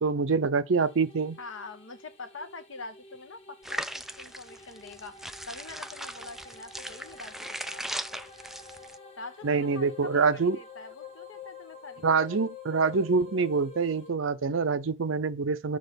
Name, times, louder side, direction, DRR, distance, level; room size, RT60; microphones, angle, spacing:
voice 1, 0.0-1.4 9.4-10.6 12.0-15.8, right 4 dB, 80° right, 0.6 m, -25 dB
sound 1, 0.8-14.1, left 4 dB, 30° left, 1.5 m, -49 dB
voice 2, 1.4-5.2 5.5-7.8 9.2-12.4, left 3 dB, 80° left, 1.3 m, -44 dB
sound 2, 3.6-9.0, right 1 dB, ahead, 0.4 m, -38 dB
6.4 x 4.3 x 5.2 m
head